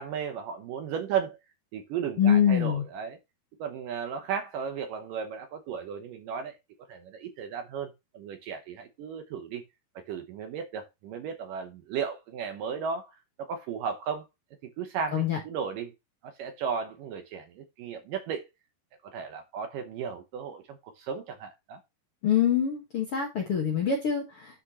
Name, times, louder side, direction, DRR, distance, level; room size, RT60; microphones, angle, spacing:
voice 1, 0.0-1.4 1.7-3.2 3.6-6.5 6.9-9.6 10.1-13.1 13.4-14.2 14.8-15.9 16.2-18.5 19.0-21.8, right 7 dB, 75° right, 2.1 m, -35 dB
voice 2, 2.2-2.8 15.1-15.4 22.2-24.6, left 8 dB, 55° left, 1.6 m, -25 dB
10.0 x 6.4 x 3.0 m
omnidirectional pair, 4.7 m